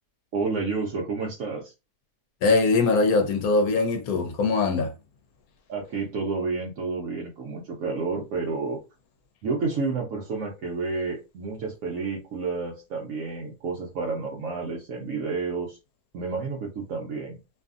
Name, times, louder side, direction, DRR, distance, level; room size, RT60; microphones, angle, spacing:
voice 1, 0.3-1.7 5.7-8.8 9.4-15.8 16.1-17.4, right 4 dB, 65° right, 0.9 m, -30 dB
voice 2, 2.4-4.9, left 3 dB, 70° left, 1.0 m, -22 dB
2.7 x 2.5 x 2.4 m
omnidirectional pair, 1.7 m